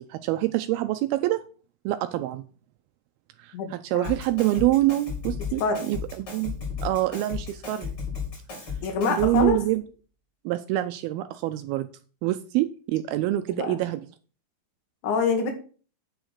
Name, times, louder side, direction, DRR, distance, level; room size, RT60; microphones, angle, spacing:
voice 1, 0.0-1.4 1.9-2.4 3.4-5.6 5.9-6.6 6.8-8.0 8.6-8.7 9.1-9.8 10.5-11.9 12.2-14.0, right 16 dB, 80° right, 10 dB, 2.3 m, -26 dB
voice 2, 3.5-4.1 5.6-5.9 8.8-9.6 13.6-13.8 15.0-15.5, left 4 dB, 60° left, 4 dB, 2.9 m, -26 dB
Drum kit, 4.0-9.6, left 6 dB, 30° left, 5.2 m, -35 dB
8.9 x 5.0 x 6.3 m, 0.38 s
omnidirectional pair, 4.7 m